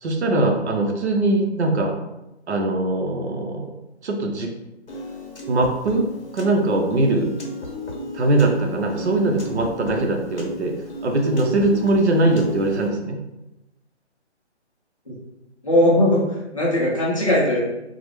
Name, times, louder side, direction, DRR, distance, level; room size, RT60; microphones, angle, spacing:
voice 1, 0.0-1.9 2.5-3.7 4.0-4.5 5.5-6.1 6.3-7.3 8.1-10.8 11.0-13.2, right 2 dB, 70° right, 2 dB, 0.6 m, -21 dB
Piano, 4.9-12.9, left 1 dB, 70° left, 0.9 m, -35 dB
voice 2, 15.6-17.6, left 1 dB, 30° left, -5 dB, 0.5 m, -19 dB
2.3 x 2.0 x 3.0 m, 0.94 s
hypercardioid pair, 170°, 35 cm